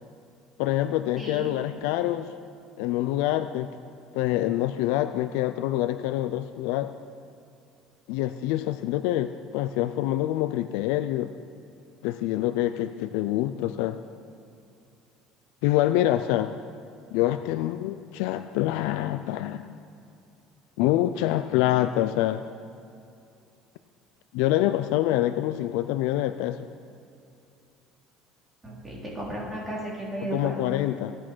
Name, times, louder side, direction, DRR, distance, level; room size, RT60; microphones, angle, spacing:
voice 1, 0.6-2.3 2.8-3.7 4.1-6.9 8.1-11.3 12.0-14.0 15.6-16.5 17.1-19.8 20.8-22.4 24.3-26.7 30.3-31.2, left 14 dB, 75° left, 10 dB, 0.4 m, -26 dB
voice 2, 1.2-1.5 28.6-30.6, right 1 dB, 10° right, -5 dB, 3.3 m, -34 dB
16.5 x 8.6 x 6.2 m, 2.6 s
cardioid pair, 175°, 0 cm